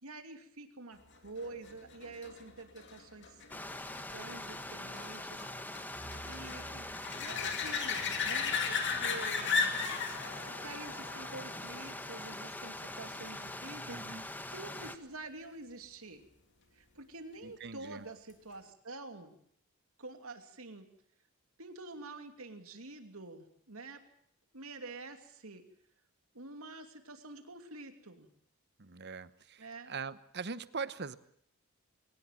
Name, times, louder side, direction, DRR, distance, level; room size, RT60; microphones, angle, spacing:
voice 1, 0.0-3.4 4.1-5.4 6.3-9.7 10.5-16.2 16.7-19.4 20.0-20.9 21.6-24.0 24.5-25.6 26.3-28.3 29.6-29.9, right 2 dB, 75° right, 7 dB, 2.8 m, -47 dB
sound 1, 1.4-12.7 18.3-18.4, left 5 dB, 55° left, 2.8 m, -37 dB
Stream, 3.5-15.0, left 1 dB, 10° left, 1.3 m, -43 dB
voice 2, 13.8-14.2 17.4-18.0 28.8-31.2, right 5 dB, 50° right, 15 dB, 1.0 m, -42 dB
23.0 x 19.0 x 7.5 m, 0.66 s
head